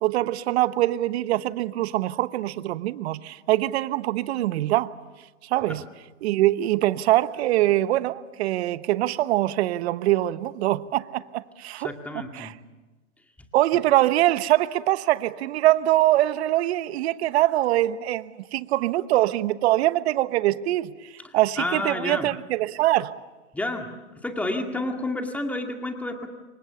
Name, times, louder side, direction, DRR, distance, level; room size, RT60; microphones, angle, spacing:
voice 1, 0.0-4.9 5.4-5.8 6.2-11.9 12.3-12.5 13.5-23.2, right 15 dB, 55° right, 1.1 m, -23 dB
voice 2, 11.8-12.6 21.2-22.3 23.5-23.9 24.2-26.3, left 2 dB, 5° left, 2.1 m, -30 dB
29.0 x 24.0 x 7.0 m
hypercardioid pair, 130°, 40 cm